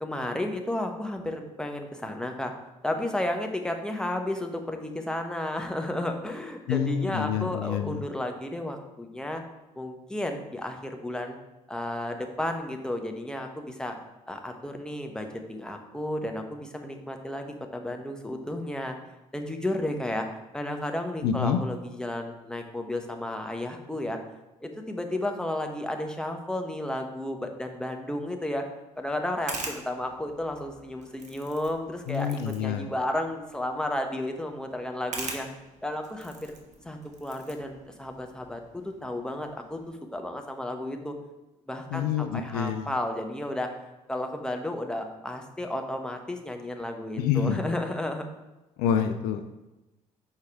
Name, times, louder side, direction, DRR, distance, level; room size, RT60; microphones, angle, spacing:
voice 1, 0.0-2.5 2.8-9.4 9.8-11.4 11.7-14.0 14.3-19.0 19.3-20.3 20.5-24.2 24.6-28.7 29.0-35.5 35.8-36.5 36.8-38.6 39.0-41.1 41.7-43.7 44.1-48.2, left 1 dB, 5° left, 4 dB, 1.0 m, -33 dB
voice 2, 6.7-8.0 21.2-21.6 32.1-32.9 41.9-42.9 47.2-47.6 48.8-49.5, left 8 dB, 65° left, 7 dB, 0.4 m, -27 dB
sound 1, 28.9-39.9, right 3 dB, 45° right, 1.1 m, -44 dB
6.4 x 4.7 x 3.5 m, 1.1 s
figure-of-eight pair, 50°, 17 cm